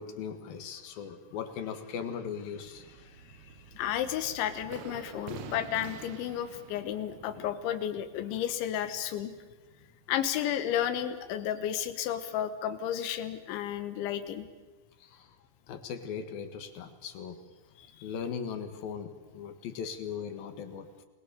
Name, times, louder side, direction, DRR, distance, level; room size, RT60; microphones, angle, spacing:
voice 1, 0.0-3.8 15.0-15.4 15.7-17.4 18.0-21.1, left 7 dB, 60° left, 9 dB, 3.0 m, -39 dB
sound 1, 2.6-11.9 12.2-12.3 12.6-12.7, right 9 dB, 75° right, 1.7 m, -49 dB
voice 2, 3.7-9.3 10.1-14.5 17.8-18.1, left 10 dB, 90° left, 11 dB, 3.8 m, -32 dB
30.0 x 20.0 x 6.8 m, 1.2 s
omnidirectional pair, 5.2 m